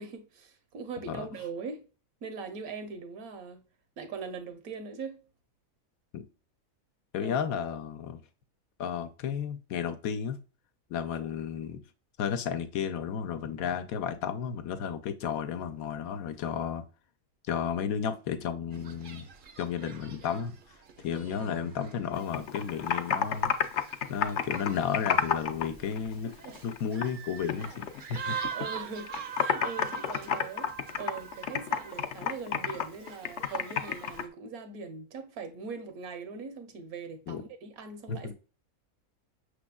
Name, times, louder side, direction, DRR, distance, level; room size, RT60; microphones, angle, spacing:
voice 1, 0.0-1.9 2.2-3.6 4.0-5.2 7.2-7.5 21.2-21.5 26.2-26.6 28.3-38.3, right 5 dB, 85° right, 1.4 m, -41 dB
voice 2, 7.1-8.2 8.8-10.4 10.9-11.8 12.2-16.8 17.5-19.3 19.6-20.6 21.0-23.5 24.1-26.3 26.6-27.8 28.1-28.4 37.3-37.4 38.1-38.3, left 7 dB, 85° left, 1.1 m, -33 dB
sound 1, 18.7-34.3, right 6 dB, 55° right, 0.6 m, -44 dB
Computer keyboard, 22.1-25.7 26.0-27.2 27.5-28.8 29.1-34.2, left 8 dB, 65° left, 0.8 m, -30 dB
6.1 x 3.3 x 2.2 m
omnidirectional pair, 1.5 m